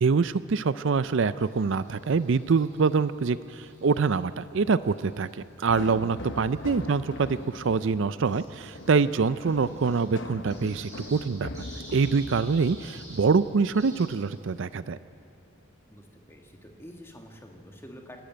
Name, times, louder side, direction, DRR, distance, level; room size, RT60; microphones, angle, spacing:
voice 1, 0.0-11.6 11.9-15.0, right 5 dB, 60° right, 15 dB, 0.4 m, -25 dB
sound 1, 1.3-14.6, right 1 dB, 15° right, 7.2 m, -52 dB
sound 2, 5.7-13.5, left 2 dB, 55° left, 0.9 m, -42 dB
voice 2, 6.6-7.0 15.9-18.2, equal, 10° left, 2 dB, 1.8 m, -48 dB
28.5 x 12.0 x 9.2 m, 2.7 s
head